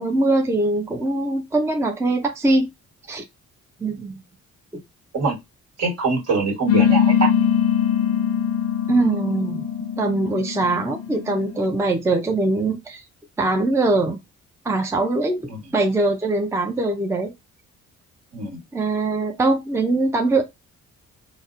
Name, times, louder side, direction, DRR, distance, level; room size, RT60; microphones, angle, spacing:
voice 1, 0.0-2.7 3.1-3.2 3.8-4.2 4.7-4.8 8.9-13.0 13.4-14.2 14.6-17.3 18.7-20.4, right 2 dB, 10° right, 0.5 m, -22 dB
voice 2, 5.8-7.5 15.5-15.6 18.3-18.6, right 4 dB, 55° right, 1.4 m, -23 dB
sound 1, 6.7-11.6, left 9 dB, 55° left, 0.5 m, -21 dB
4.0 x 2.0 x 2.4 m
cardioid pair, 90°, 30 cm